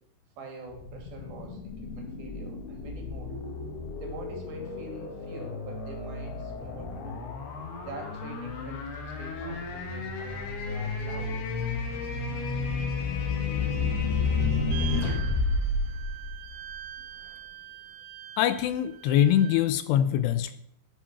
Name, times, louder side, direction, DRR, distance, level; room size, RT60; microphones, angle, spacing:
voice 1, 0.4-3.3 4.0-7.3 7.8-11.3, right 2 dB, 60° right, 2 dB, 4.0 m, -44 dB
sound 1, 0.7-16.9, left 3 dB, 65° left, 3.6 m, -31 dB
sound 2, 14.7-19.7, right 13 dB, 90° right, 2.1 m, -43 dB
voice 2, 18.4-20.5, left 11 dB, 80° left, 12 dB, 2.6 m, -23 dB
11.0 x 10.5 x 6.0 m, 0.74 s
omnidirectional pair, 5.1 m